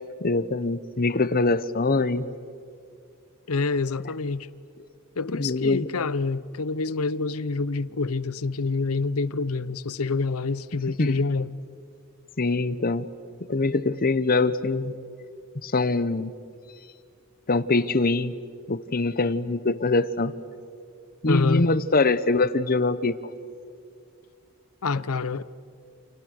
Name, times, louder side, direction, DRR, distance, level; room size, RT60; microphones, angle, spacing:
voice 1, 0.2-2.3 5.4-5.9 11.0-11.2 12.4-13.1 13.5-14.9 15.6-16.3 17.5-18.4 18.7-20.3 21.2-23.2, left 3 dB, 45° left, 0.9 m, -23 dB
voice 2, 3.5-4.5 5.2-11.5 21.2-21.7 24.8-25.4, left 4 dB, 85° left, 0.8 m, -27 dB
29.0 x 29.0 x 6.5 m
head